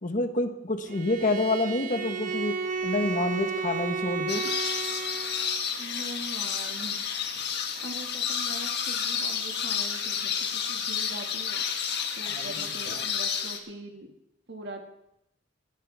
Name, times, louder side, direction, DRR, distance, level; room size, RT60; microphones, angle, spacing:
voice 1, 0.0-4.5 12.3-13.0, left 2 dB, 45° left, 7 dB, 1.2 m, -28 dB
Bowed string instrument, 0.9-5.6, right 5 dB, 45° right, 1.1 m, -33 dB
sound 1, 4.3-13.6, left 7 dB, 65° left, 1.5 m, -30 dB
voice 2, 5.8-7.0 7.8-11.6 12.1-14.1 14.5-14.8, right 2 dB, 65° right, 2 dB, 2.0 m, -42 dB
18.5 x 12.0 x 3.5 m, 0.82 s
head